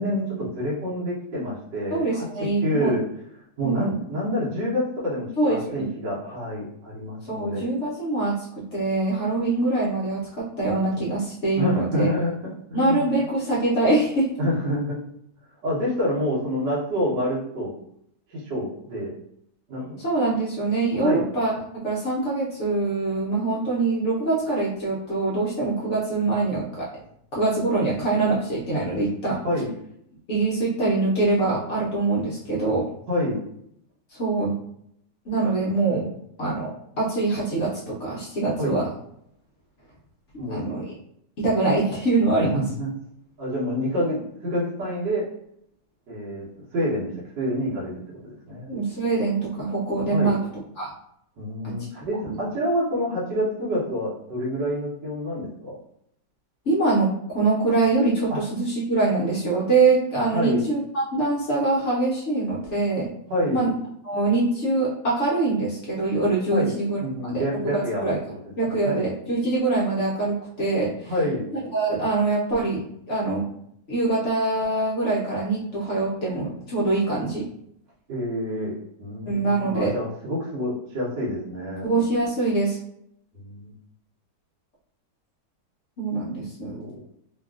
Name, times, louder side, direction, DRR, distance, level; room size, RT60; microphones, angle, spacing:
voice 1, 0.0-3.0 3.6-7.7 11.6-13.1 14.4-15.1 15.6-17.7 18.3-19.1 19.7-20.0 20.9-21.2 29.4-29.7 33.1-33.4 38.6-38.8 40.4-40.8 42.4-42.9 43.4-45.2 46.1-46.5 46.7-48.7 50.1-50.4 51.4-55.7 58.3-58.4 60.3-60.6 63.3-63.6 66.5-66.7 67.0-68.1 68.8-69.0 71.1-71.5 78.1-81.9 83.3-83.7 86.6-86.9, equal, 90° right, -7 dB, 1.6 m, -27 dB
voice 2, 1.9-3.0 3.6-4.0 5.4-5.9 7.3-12.1 12.7-14.3 20.0-21.5 21.8-26.9 27.3-29.4 30.3-32.9 34.2-34.6 35.3-36.1 36.4-36.7 37.0-38.9 40.5-40.9 41.4-42.6 48.7-50.9 51.6-51.7 52.2-52.4 56.7-63.1 63.5-63.7 64.0-68.2 68.6-71.1 71.7-73.4 73.9-77.5 79.3-79.9 81.8-82.8 86.0-86.8, right 3 dB, 60° left, -5 dB, 0.7 m, -24 dB
3.4 x 2.3 x 2.3 m, 0.73 s
omnidirectional pair, 1.9 m